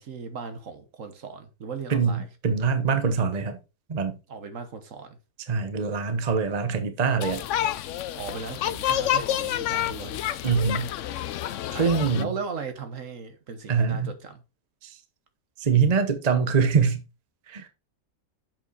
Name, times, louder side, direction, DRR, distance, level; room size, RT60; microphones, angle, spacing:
voice 1, 0.0-2.3 4.3-5.2 8.2-10.2 11.7-14.4, right 5 dB, 55° right, 1.3 m, -37 dB
voice 2, 1.9-3.6 3.9-4.2 5.5-7.4 10.4-10.9 11.7-12.3 13.7-14.1 14.8-15.0 15.6-17.0 17.5-17.7, right 5 dB, 35° right, 0.8 m, -24 dB
sound 1, 7.2-12.2, left 11 dB, 70° left, 0.7 m, -29 dB
7.2 x 5.4 x 4.0 m
omnidirectional pair, 1.8 m